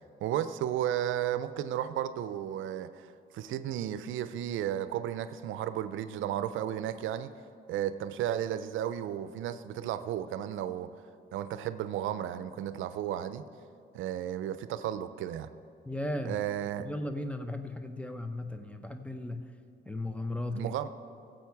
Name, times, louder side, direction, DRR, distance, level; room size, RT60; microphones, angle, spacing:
voice 1, 0.2-3.1 3.3-7.3 7.7-10.9 11.3-13.4 13.9-15.5 16.3-16.9 20.5-20.9, right 11 dB, 80° right, 12 dB, 0.5 m, -33 dB
voice 2, 15.8-16.4 16.8-19.4 19.9-20.7, left 1 dB, 5° left, 8 dB, 0.8 m, -36 dB
15.0 x 7.7 x 4.7 m, 2.5 s
cardioid pair, 90°, 20 cm